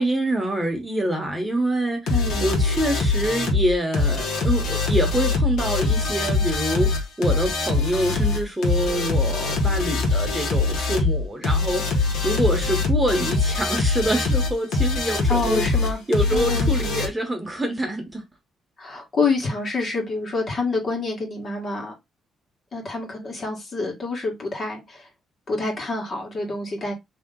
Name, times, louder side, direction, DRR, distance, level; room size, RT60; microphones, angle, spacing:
voice 1, 0.0-2.2 2.4-15.6 16.1-18.2, right 1 dB, 10° right, 1.1 m, -25 dB
sound 1, 2.1-17.1, left 3 dB, 75° left, 1.4 m, -23 dB
voice 2, 2.1-2.4 15.3-16.0 16.3-16.7 18.8-21.9 22.7-25.1 25.5-26.9, left 3 dB, 45° left, 1.6 m, -27 dB
3.0 x 2.9 x 3.8 m
cardioid pair, 90°, 0 cm